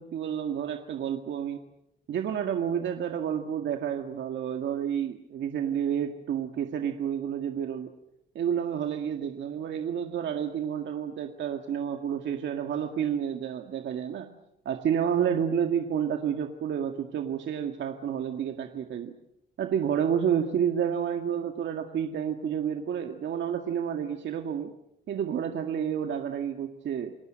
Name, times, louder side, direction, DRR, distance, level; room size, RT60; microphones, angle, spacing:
voice 1, 0.0-1.7 2.1-7.9 8.4-14.3 14.7-19.2 19.6-24.7 25.1-27.2, right 8 dB, 65° right, 5 dB, 2.0 m, -30 dB
28.0 x 19.0 x 7.8 m, 0.82 s
cardioid pair, 90°, 20 cm